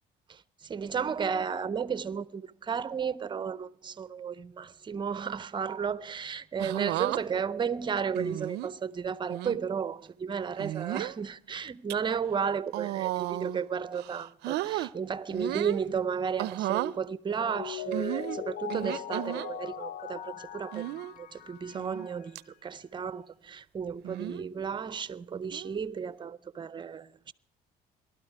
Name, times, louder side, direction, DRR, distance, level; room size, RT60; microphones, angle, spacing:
voice 1, 0.3-27.3, right 6 dB, 30° right, 0.6 m, -33 dB
sound 1, 6.6-7.2 8.2-8.7 9.3-9.6 10.6-11.1 11.7-11.9 12.7-13.6 13.9-14.9 15.3-15.8 16.4-16.9 17.9-19.5 20.7-21.1 21.7-22.1 22.4-22.5 24.0-24.4 25.5-25.8, right 16 dB, 85° right, 0.5 m, -33 dB
Mallet percussion, 17.3-22.2, left 11 dB, 60° left, 0.7 m, -40 dB
19.0 x 12.5 x 4.6 m
cardioid pair, 110°, 17 cm